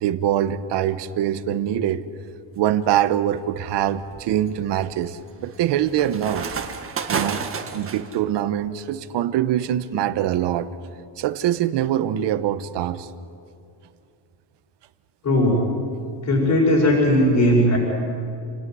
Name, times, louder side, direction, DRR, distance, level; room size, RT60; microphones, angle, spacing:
voice 1, 0.0-2.1 2.6-6.5 7.1-7.4 7.7-10.7 11.2-13.1, right 11 dB, 65° right, 12 dB, 1.3 m, -23 dB
sound 1, 2.6-3.0 3.5-8.2, right 6 dB, 30° right, 1.7 m, -31 dB
voice 2, 15.2-15.6 16.2-17.8, left 1 dB, 40° left, -2 dB, 6.4 m, -17 dB
30.0 x 18.0 x 9.5 m, 2.6 s
cardioid pair, 160°, 46 cm